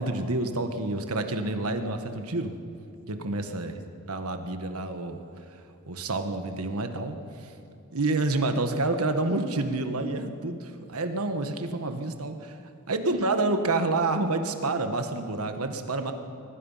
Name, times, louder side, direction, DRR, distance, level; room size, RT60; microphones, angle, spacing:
voice 1, 0.0-2.5 3.1-3.8 4.1-5.2 5.9-7.5 7.9-12.6 12.9-16.1, right 2 dB, 75° right, 7 dB, 1.5 m, -28 dB
23.0 x 20.5 x 5.7 m, 2.6 s
head